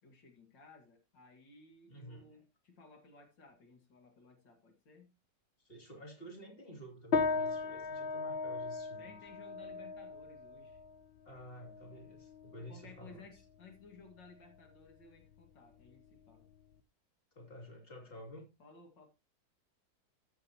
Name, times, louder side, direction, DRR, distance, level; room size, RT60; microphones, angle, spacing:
voice 1, 0.0-5.1 9.0-10.8 12.7-16.5 18.6-19.1, left 4 dB, 85° left, 4 dB, 2.7 m, -58 dB
voice 2, 1.9-2.4 5.6-9.2 11.2-13.4 17.3-18.5, equal, 30° left, 1 dB, 3.1 m, -51 dB
sound 1, 7.1-16.8, left 4 dB, 70° left, 0.5 m, -39 dB
13.5 x 8.1 x 2.9 m, 0.26 s
omnidirectional pair, 1.9 m